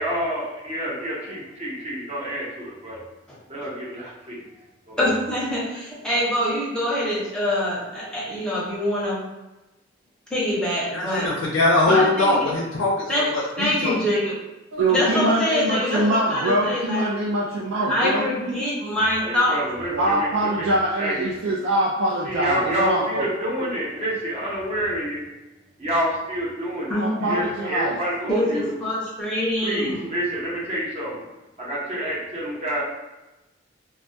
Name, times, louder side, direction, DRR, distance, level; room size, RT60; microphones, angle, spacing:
voice 1, 0.0-3.0 3.5-5.0 19.2-20.7 21.0-21.3 22.2-25.2 25.8-28.7 29.6-31.2 31.6-32.8, equal, 35° right, -6 dB, 0.7 m, -28 dB
voice 2, 5.0-9.2 10.3-11.3 11.8-12.5 13.1-13.3 13.6-14.4 14.9-17.1 17.9-19.6 26.9-27.3 28.3-30.1, left 1 dB, 5° left, -7 dB, 0.7 m, -24 dB
voice 3, 10.9-14.0, left 2 dB, 80° left, -3 dB, 0.4 m, -22 dB
voice 4, 14.7-18.9 19.9-23.3 23.6-23.7 27.0-28.0 28.2-28.3, right 1 dB, 70° right, -4 dB, 0.3 m, -24 dB
2.2 x 2.1 x 2.6 m, 1.0 s
head